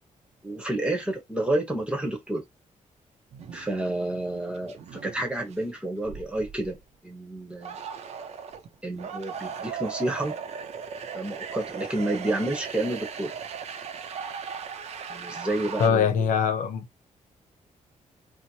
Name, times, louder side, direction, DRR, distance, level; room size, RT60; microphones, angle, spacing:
voice 1, 0.4-2.4 3.5-6.8 7.0-7.8 8.8-10.3 11.1-13.3 15.1-16.3, right 1 dB, 10° right, 1.0 m, -30 dB
sound 1, 3.3-3.8 4.1-5.6 6.0-7.0 7.6-15.9, right 6 dB, 55° right, 0.6 m, -38 dB
voice 2, 15.8-17.0, left 7 dB, 80° left, 0.7 m, -23 dB
4.4 x 2.1 x 2.8 m
wide cardioid pair, 155°, 13 cm